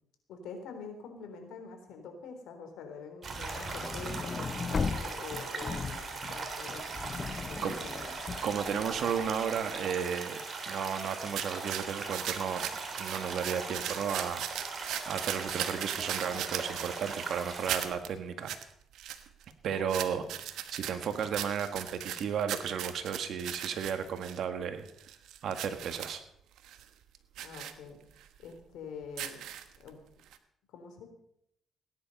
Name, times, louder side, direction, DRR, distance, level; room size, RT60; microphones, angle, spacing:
voice 1, 0.3-6.9 7.5-8.0 19.7-20.3 21.0-21.2 27.4-28.0 28.4-29.5 29.8-30.0 30.7-31.1, left 5 dB, 85° left, 5 dB, 3.6 m, -46 dB
sound 1, 3.2-17.9, right 4 dB, 45° right, 3.1 m, -39 dB
sound 2, 3.3-9.6, left 5 dB, 35° left, 0.6 m, -38 dB
voice 2, 7.3-7.7 8.4-10.4 10.7-12.7 13.0-14.7 15.1-18.5 19.6-24.9 25.4-26.2, right 7 dB, 70° right, 8 dB, 1.8 m, -34 dB
sound 3, 11.4-17.3 17.7-18.1 18.5-18.6 18.9-19.5 19.9-24.4 24.9-26.2 26.6-26.8 27.4-27.7 28.2-28.3 29.0-29.9 30.3-30.4, right 11 dB, 85° right, 1.1 m, -38 dB
17.0 x 10.5 x 5.4 m, 0.72 s
cardioid pair, 90°, 0 cm